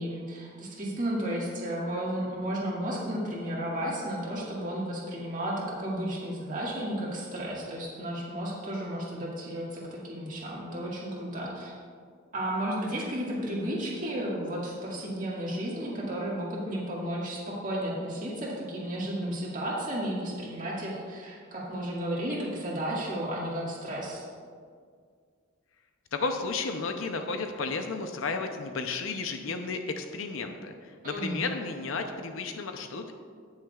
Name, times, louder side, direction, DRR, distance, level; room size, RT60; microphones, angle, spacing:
voice 1, 0.0-11.7 12.3-24.2 31.0-31.4, right 1 dB, 40° right, -6 dB, 1.9 m, -33 dB
voice 2, 26.1-33.1, left 4 dB, 70° left, 6 dB, 0.6 m, -33 dB
18.0 x 6.4 x 2.4 m, 2.1 s
head